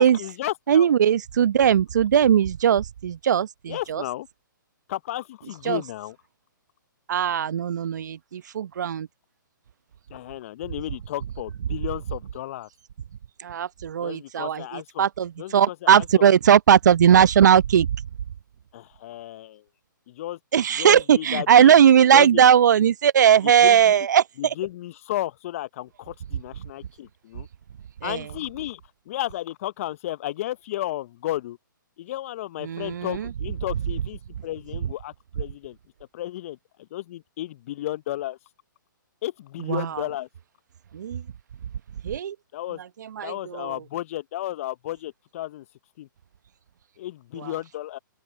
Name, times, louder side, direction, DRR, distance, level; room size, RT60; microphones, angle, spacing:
voice 1, 0.0-0.9 3.7-4.3 4.9-6.2 10.1-12.7 14.0-15.0 15.4-16.2 18.7-19.6 20.1-20.4 20.8-21.7 22.1-22.4 23.6-23.9 24.4-27.5 28.0-28.8 29.1-31.6 32.0-35.8 36.1-36.6 36.9-38.4 39.2-40.3 42.5-42.8 43.2-45.6 46.0-46.1 47.0-48.0, left 14 dB, 40° left, 0.9 m, -33 dB
voice 2, 0.7-4.0 5.7-5.8 7.1-9.1 13.4-17.9 20.5-24.5 28.0-28.3 32.6-33.3 39.6-40.0 40.9-41.2 42.0-42.4 43.0-43.7 47.4-47.5, right 9 dB, 60° right, 0.9 m, -19 dB
open air
figure-of-eight pair, 130°, 11 cm